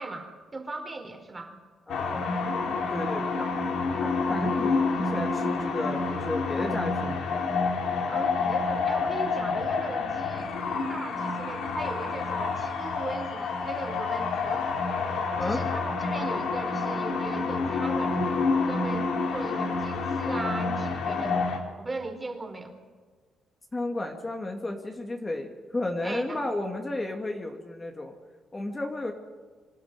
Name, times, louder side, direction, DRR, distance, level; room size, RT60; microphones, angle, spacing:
voice 1, 0.0-1.6 8.1-10.5 10.9-14.7 15.1-18.4 18.7-22.7 26.0-26.5, right 2 dB, 20° right, 5 dB, 4.1 m, -38 dB
sound 1, 1.9-21.6, left 4 dB, 75° left, 3.6 m, -28 dB
voice 2, 1.9-2.3 2.6-3.5 4.0-7.2 15.4-15.6 23.7-28.1 28.5-29.1, left 2 dB, 20° left, 3 dB, 2.4 m, -33 dB
26.0 x 12.5 x 9.8 m, 1.5 s
cardioid pair, 90°, 0 cm